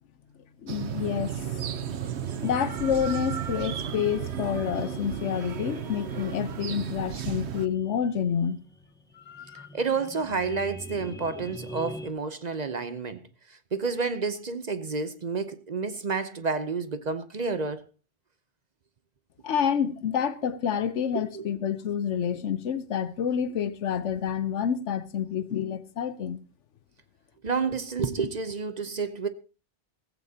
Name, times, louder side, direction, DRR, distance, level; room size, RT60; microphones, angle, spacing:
voice 1, 0.6-1.4 2.4-8.6 9.1-9.7 19.4-26.4, left 8 dB, 85° left, 1.1 m, -28 dB
sound 1, 0.7-7.7, right 8 dB, 70° right, 1.1 m, -34 dB
sound 2, 2.0-12.1, equal, 5° left, 0.5 m, -45 dB
voice 2, 9.5-13.2 13.7-17.8 21.1-21.5 27.4-29.3, right 4 dB, 40° right, 0.8 m, -30 dB
15.0 x 15.0 x 2.8 m
omnidirectional pair, 1.2 m